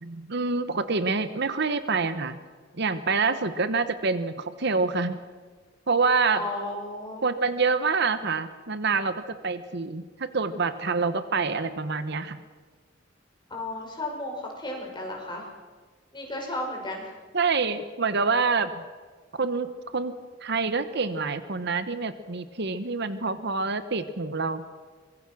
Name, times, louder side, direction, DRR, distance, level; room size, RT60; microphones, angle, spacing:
voice 1, 0.0-2.4 2.7-5.2 5.9-6.4 7.2-12.4 17.3-18.8 19.4-24.6, right 4 dB, 60° right, 12 dB, 1.1 m, -27 dB
voice 2, 6.3-7.2 13.5-15.5 16.1-17.0, left 1 dB, 25° left, 0 dB, 6.0 m, -34 dB
24.0 x 22.0 x 6.3 m, 1.4 s
head